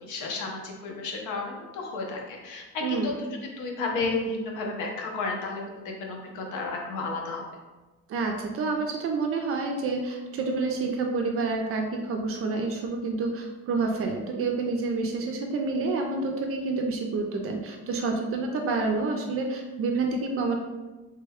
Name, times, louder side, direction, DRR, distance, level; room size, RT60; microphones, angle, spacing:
voice 1, 0.0-3.1 3.4-7.4, left 3 dB, 90° left, 0 dB, 0.7 m, -32 dB
voice 2, 2.8-3.1 8.1-20.6, right 3 dB, 50° right, 2 dB, 0.4 m, -28 dB
3.2 x 2.2 x 3.4 m, 1.2 s
cardioid pair, 145°, 30 cm